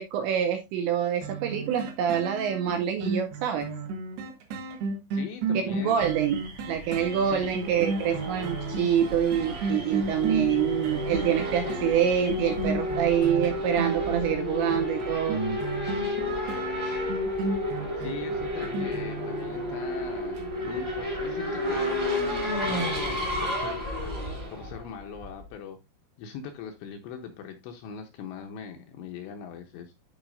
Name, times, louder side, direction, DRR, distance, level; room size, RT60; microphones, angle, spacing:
voice 1, 0.0-3.8 5.7-15.4, right 9 dB, 85° right, 6 dB, 2.6 m, -26 dB
sound 1, 1.2-19.9 20.4-20.5, right 4 dB, 65° right, 2.9 m, -33 dB
voice 2, 5.1-6.1 7.2-7.6 18.0-22.0 22.7-24.1 24.5-25.8 26.2-29.9, left 7 dB, 80° left, 4 dB, 2.7 m, -41 dB
sound 2, 6.0-12.7, right 1 dB, 50° right, 2.1 m, -42 dB
Race car auto racing / Accelerating revving vroom, 7.4-25.5, left 1 dB, 25° right, 1.4 m, -31 dB
12.0 x 4.9 x 2.5 m, 0.23 s
omnidirectional pair, 5.8 m